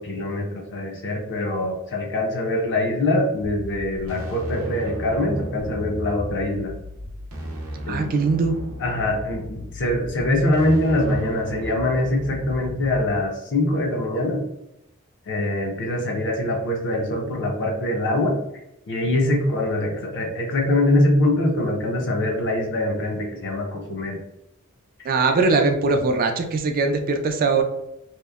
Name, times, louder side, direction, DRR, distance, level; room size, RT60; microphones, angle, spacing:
voice 1, 0.0-6.7 7.8-8.1 8.8-14.4 15.3-18.4 18.9-24.2, left 1 dB, 55° left, 0 dB, 0.6 m, -23 dB
sound 1, 3.3-13.1, equal, 85° right, 0.6 m, -35 dB
voice 2, 7.9-8.5 25.1-27.6, right 3 dB, 40° right, 5 dB, 0.3 m, -21 dB
2.8 x 2.0 x 2.3 m, 0.85 s
head